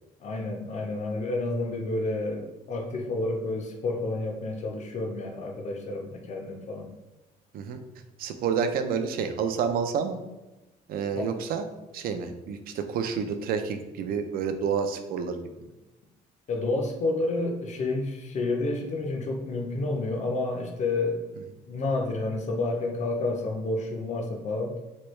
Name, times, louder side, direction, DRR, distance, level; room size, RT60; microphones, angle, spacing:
voice 1, 0.2-6.9 11.2-11.3 16.5-21.2 21.7-24.7, left 2 dB, 45° left, 2 dB, 0.6 m, -30 dB
voice 2, 8.2-10.2 10.9-11.7 11.9-15.7, right 6 dB, 60° right, 7 dB, 0.4 m, -29 dB
3.1 x 2.2 x 3.1 m, 1.1 s
cardioid pair, 110°, 17 cm